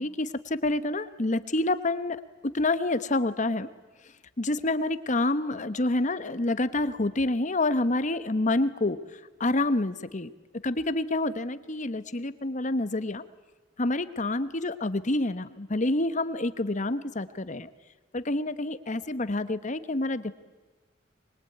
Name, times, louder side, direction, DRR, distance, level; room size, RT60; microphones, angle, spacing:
voice 1, 0.0-2.2 2.5-3.7 4.4-9.0 9.4-10.3 10.6-13.2 13.8-17.7 18.1-20.3, left 2 dB, 40° left, 13 dB, 1.1 m, -28 dB
24.5 x 22.0 x 9.3 m, 1.3 s
head